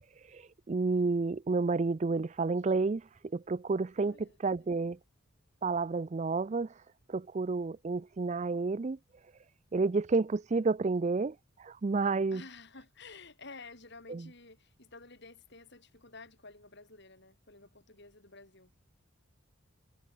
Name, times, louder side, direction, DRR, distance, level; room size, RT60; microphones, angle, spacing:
voice 1, 0.3-5.0 5.6-6.7 7.1-9.0 9.7-12.4 14.1-14.2, right 3 dB, 30° right, 0.4 m, -30 dB
voice 2, 4.0-4.8 12.3-18.7, left 3 dB, 50° left, 5.3 m, -52 dB
head